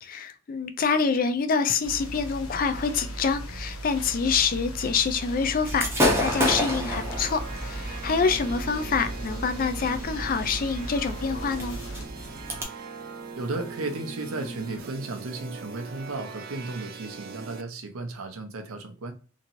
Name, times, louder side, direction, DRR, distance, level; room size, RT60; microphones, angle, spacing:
voice 1, 0.0-11.8, left 5 dB, 40° left, 0.3 m, -26 dB
sound 1, 1.8-12.1, right 1 dB, 90° left, 0.7 m, -37 dB
Gunshot gunfire / Fireworks, 5.7-12.6, left 1 dB, 10° right, 0.7 m, -30 dB
sound 2, 6.2-17.6, right 4 dB, 45° right, 0.3 m, -41 dB
voice 2, 13.4-19.1, right 2 dB, 85° right, 0.6 m, -34 dB
2.9 x 2.7 x 2.5 m
head